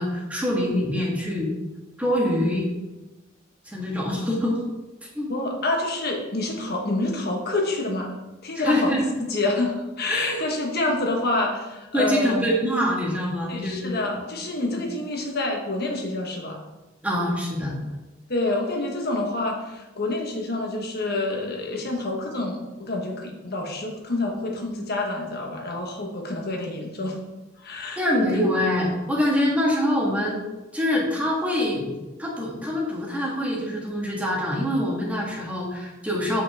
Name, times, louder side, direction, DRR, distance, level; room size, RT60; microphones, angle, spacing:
voice 1, 0.0-1.5 2.0-2.7 3.6-4.6 5.1-5.3 8.5-9.0 10.1-10.4 11.9-14.2 14.7-14.8 17.0-17.7 28.0-30.4 30.7-31.9 32.2-36.4, left 1 dB, 5° right, -3 dB, 1.6 m, -25 dB
voice 2, 5.3-8.2 8.4-8.9 9.2-12.4 13.5-16.6 18.3-27.2 27.6-28.5, left 2 dB, 50° left, 1 dB, 1.3 m, -27 dB
7.9 x 5.7 x 3.5 m, 1.1 s
head